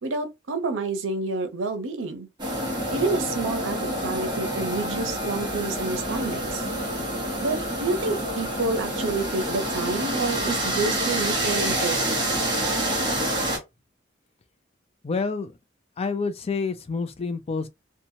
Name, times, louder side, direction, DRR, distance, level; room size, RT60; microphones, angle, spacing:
voice 1, 0.0-2.3 2.9-3.8 4.0-6.6 7.4-12.2, right 3 dB, 85° right, 0.7 m, -29 dB
sound 1, 2.4-13.6, right 1 dB, 25° right, 1.0 m, -27 dB
voice 2, 15.0-15.6 16.0-17.7, left 4 dB, 30° left, 0.4 m, -28 dB
2.8 x 2.2 x 2.7 m
head